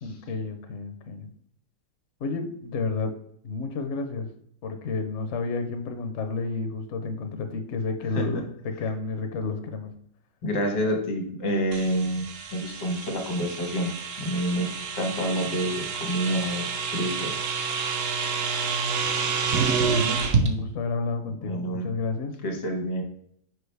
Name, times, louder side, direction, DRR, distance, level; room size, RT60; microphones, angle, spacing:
voice 1, 0.0-1.3 2.2-3.1 3.4-4.3 4.6-9.9 19.9-22.4, left 4 dB, 55° left, 6 dB, 0.9 m, -31 dB
voice 2, 10.4-13.9 14.2-14.7 14.9-16.7 16.9-17.5 21.4-21.9 22.4-23.0, equal, 80° left, 4 dB, 2.0 m, -28 dB
sound 1, 11.7-20.5, right 5 dB, 55° right, 1.0 m, -28 dB
6.2 x 4.9 x 3.3 m, 0.67 s
omnidirectional pair, 1.8 m